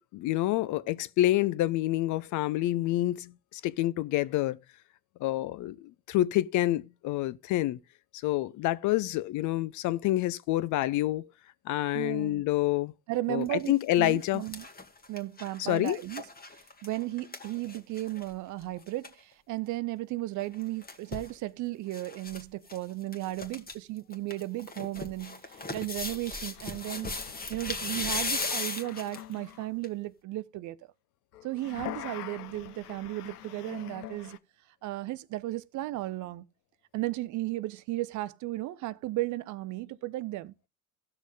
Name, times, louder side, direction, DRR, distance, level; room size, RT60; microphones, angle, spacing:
voice 1, 0.0-4.6 5.2-7.8 8.2-11.3 11.7-12.9 13.3-14.4 15.6-16.0, left 15 dB, 45° left, 0.5 m, -28 dB
voice 2, 11.9-12.4 13.1-14.7 15.1-16.2 16.8-27.1 27.5-30.8 31.4-34.4 34.8-36.4 36.9-40.7, right 17 dB, 40° right, 0.6 m, -35 dB
sound 1, 13.4-13.7 14.1-18.3 18.6-18.7 18.9-19.1 20.4-21.3 21.9-22.4 22.7-22.8 23.1-23.7 24.1-29.3 29.8-29.9, left 3 dB, 20° left, 1.6 m, -37 dB
sound 2, 25.5-25.6 26.3-29.7 31.3-34.4, left 12 dB, 85° left, 0.6 m, -45 dB
17.5 x 6.2 x 2.4 m
hypercardioid pair, 65°, 45 cm